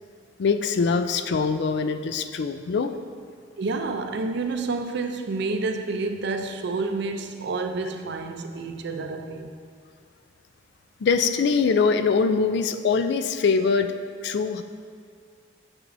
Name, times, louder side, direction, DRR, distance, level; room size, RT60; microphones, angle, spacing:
voice 1, 0.4-3.0 11.0-14.0 14.2-14.6, left 5 dB, 65° left, 0.4 m, -23 dB
voice 2, 3.6-9.5, right 3 dB, 65° right, 0.5 m, -29 dB
9.7 x 6.1 x 2.6 m
head